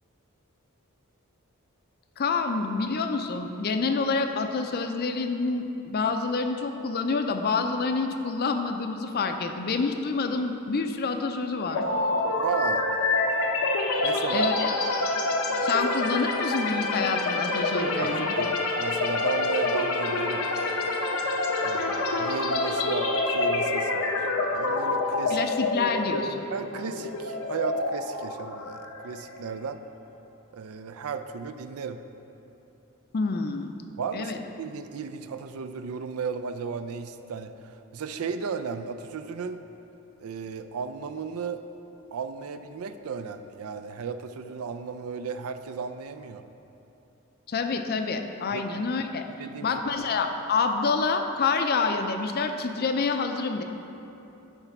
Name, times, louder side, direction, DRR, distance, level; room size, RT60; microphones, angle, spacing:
voice 1, 2.2-11.8 14.3-14.7 15.6-18.3 25.3-26.4 33.1-33.7 34.1-34.4 47.5-49.3 49.6-53.6, left 4 dB, 45° left, 6 dB, 0.5 m, -27 dB
sound 1, 11.7-29.5, left 2 dB, 80° left, 0.8 m, -27 dB
voice 2, 12.4-12.9 14.0-14.5 18.0-20.6 21.6-25.4 26.5-29.8 30.5-32.0 34.0-39.6 40.2-41.6 42.1-46.5 48.5-48.6 49.3-49.8, right 5 dB, 80° right, 9 dB, 0.4 m, -34 dB
9.9 x 3.3 x 5.8 m, 2.9 s
head